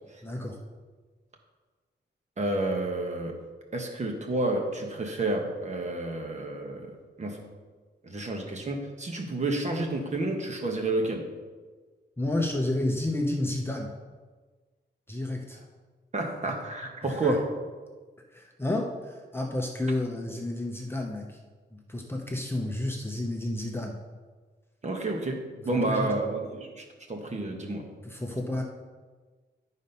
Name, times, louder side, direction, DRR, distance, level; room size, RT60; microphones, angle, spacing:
voice 1, 0.2-0.6 12.2-13.9 15.1-15.6 17.0-17.4 18.3-21.4 21.7-24.0 25.7-26.1 28.0-28.6, left 1 dB, 10° left, 1 dB, 0.7 m, -31 dB
voice 2, 2.4-3.4 3.7-7.4 8.0-11.3 16.1-17.4 24.8-25.4 25.6-27.9, right 2 dB, 40° right, 2 dB, 1.2 m, -30 dB
11.0 x 4.2 x 5.4 m, 1.4 s
wide cardioid pair, 165°, 19 cm